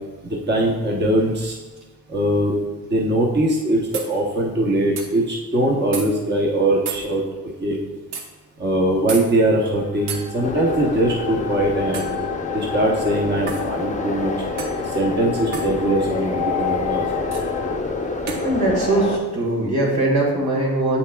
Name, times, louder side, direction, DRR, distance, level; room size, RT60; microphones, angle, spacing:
voice 1, 0.3-1.5 2.1-2.5 2.9-7.2 7.6-7.8 8.6-12.1 12.5-14.3 14.9-17.0, right 1 dB, 25° right, -2 dB, 0.9 m, -21 dB
sound 1, 3.9-4.1 5.0-5.1 5.9-6.1 6.9-7.0 8.1-8.3 9.1-9.3 10.1-10.2 11.9-12.2 13.5-13.7 14.6-14.8 15.5-15.7 17.3-17.5 18.3-18.5, right 5 dB, 85° right, 0.9 m, -30 dB
sound 2, 9.7-17.8, left 10 dB, 65° left, 0.5 m, -31 dB
sound 3, 10.4-19.2, left 3 dB, 20° left, 0.7 m, -27 dB
voice 2, 18.4-21.0, right 2 dB, 65° right, -2 dB, 2.0 m, -20 dB
8.1 x 5.5 x 2.3 m, 1.2 s
cardioid pair, 70°, 40 cm